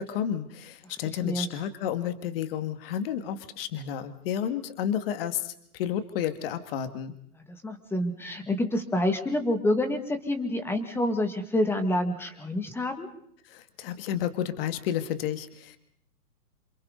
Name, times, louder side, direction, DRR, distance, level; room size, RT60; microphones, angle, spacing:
voice 1, 0.0-7.1 13.5-15.8, left 9 dB, 40° left, 10 dB, 2.1 m, -31 dB
voice 2, 7.5-13.1, left 1 dB, 5° left, 7 dB, 2.0 m, -28 dB
28.5 x 27.5 x 4.0 m, 0.67 s
hypercardioid pair, 145°, 45 cm